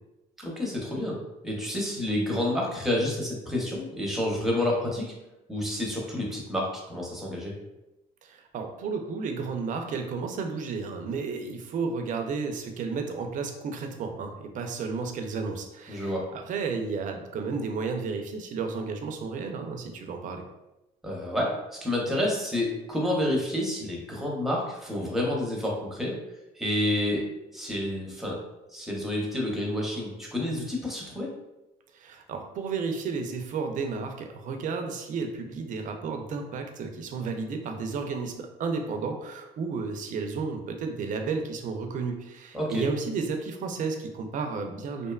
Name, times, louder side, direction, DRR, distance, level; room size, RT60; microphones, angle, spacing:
voice 1, 0.4-1.1 1.4-5.1 5.5-7.5 15.9-16.2 21.0-26.1 26.5-27.2 27.5-28.4 28.7-31.3 42.5-42.8, left 1 dB, ahead, -2 dB, 0.6 m, -29 dB
voice 2, 8.2-20.4 31.9-45.1, right 4 dB, 50° right, 5 dB, 0.4 m, -32 dB
2.6 x 2.2 x 2.3 m, 0.97 s
cardioid pair, 110°, 17 cm